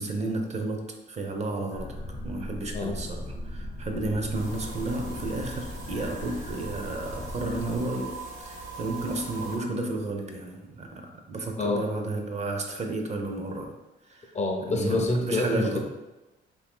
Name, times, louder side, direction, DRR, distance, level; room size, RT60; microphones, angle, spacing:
voice 1, 0.0-2.0 2.2-13.8 14.1-14.3 14.7-15.8, right 2 dB, 35° right, 3 dB, 0.5 m, -32 dB
sound 1, 1.7-7.8, left 1 dB, 75° left, 0.8 m, -38 dB
sound 2, 4.3-9.6, right 3 dB, 80° right, 0.9 m, -41 dB
voice 2, 14.3-15.8, left 2 dB, 35° left, 3 dB, 0.5 m, -27 dB
2.7 x 2.6 x 3.5 m, 1.1 s
cardioid pair, 90°, 20 cm